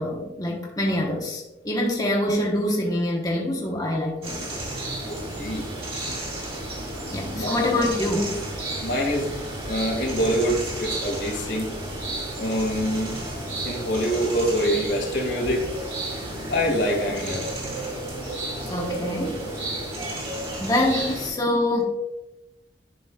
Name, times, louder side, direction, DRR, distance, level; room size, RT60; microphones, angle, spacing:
voice 1, 0.0-4.4 7.1-8.5 18.7-19.4 20.5-21.8, left 1 dB, 20° left, -2 dB, 1.1 m, -25 dB
sound 1, 4.2-21.3, right 1 dB, 35° right, 2.3 m, -32 dB
voice 2, 5.1-5.6 7.3-7.6 8.8-9.3 9.7-11.7 12.4-13.2 13.6-15.7 16.0-16.1 16.5-17.5, equal, 75° left, 0 dB, 2.0 m, -25 dB
11.0 x 5.1 x 2.4 m, 0.96 s
head